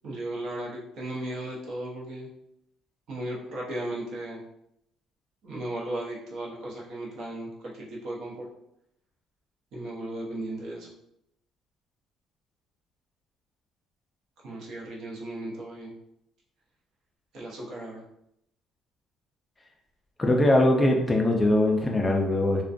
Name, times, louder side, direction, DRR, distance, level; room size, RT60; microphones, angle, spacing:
voice 1, 0.0-2.3 3.1-4.4 5.4-8.5 9.7-10.9 14.4-15.9 17.3-18.0, right 1 dB, 60° right, -3 dB, 0.7 m, -36 dB
voice 2, 20.2-22.7, left 1 dB, 15° left, 1 dB, 0.3 m, -21 dB
2.4 x 2.1 x 2.5 m, 0.79 s
cardioid pair, 140°, 0 cm